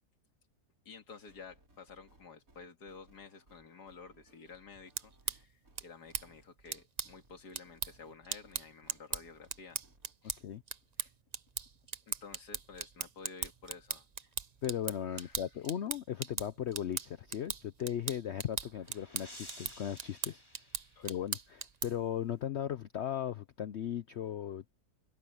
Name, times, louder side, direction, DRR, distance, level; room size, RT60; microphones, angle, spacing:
voice 1, 0.9-9.8 10.2-10.4 11.0-11.1 12.1-14.1 15.1-15.4 20.9-21.1, left 5 dB, 85° left, 2.6 m, -52 dB
sound 1, 1.1-10.1, right 2 dB, 60° right, 5.9 m, -66 dB
sound 2, 4.7-22.1, right 6 dB, 40° right, 0.6 m, -41 dB
voice 2, 14.6-20.4 21.0-24.7, left 10 dB, 60° left, 0.7 m, -37 dB
sound 3, 18.2-21.6, left 1 dB, 15° left, 4.5 m, -54 dB
omnidirectional pair, 1.7 m